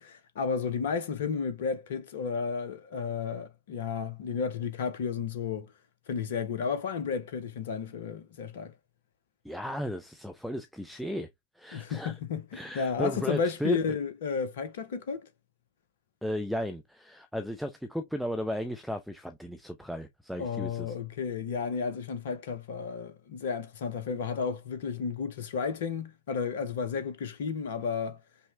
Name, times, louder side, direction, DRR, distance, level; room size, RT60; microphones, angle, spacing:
voice 1, 0.0-5.7 6.1-8.7 11.7-15.3 20.4-28.2, left 6 dB, 55° left, 0.6 m, -32 dB
voice 2, 9.4-11.3 11.6-12.1 12.5-13.8 16.2-20.9, equal, ahead, 0.5 m, -35 dB
5.4 x 2.0 x 3.1 m
figure-of-eight pair, 90°, 0 cm